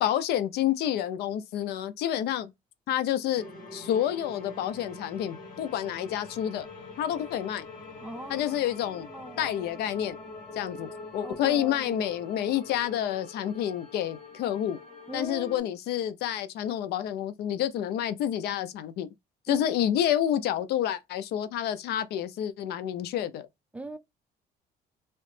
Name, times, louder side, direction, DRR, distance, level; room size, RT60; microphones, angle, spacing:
voice 1, 0.0-2.5 2.9-3.4 3.7-6.7 7.0-7.6 8.3-9.1 9.4-10.2 10.5-14.8 15.1-19.1 19.5-23.5, left 11 dB, 75° left, 0.5 m, -29 dB
sound 1, 3.3-15.6, left 3 dB, 55° left, 1.9 m, -45 dB
voice 2, 8.0-8.5 9.1-9.5 11.2-12.0 15.1-15.7 19.5-19.7 23.7-24.0, right 2 dB, 10° right, 0.4 m, -40 dB
3.1 x 2.8 x 3.1 m
cardioid pair, 110°, 17 cm